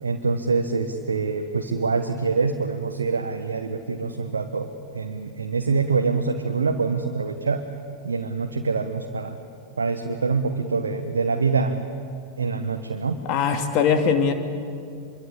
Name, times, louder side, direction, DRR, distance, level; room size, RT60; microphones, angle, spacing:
voice 1, 0.0-7.6 8.0-9.4 9.8-11.8 12.4-13.2, right 4 dB, 75° right, 5 dB, 1.2 m, -25 dB
voice 2, 13.2-14.3, left 6 dB, 40° left, 6 dB, 2.5 m, -21 dB
25.5 x 23.5 x 8.6 m, 2.4 s
figure-of-eight pair, 90°, 0 cm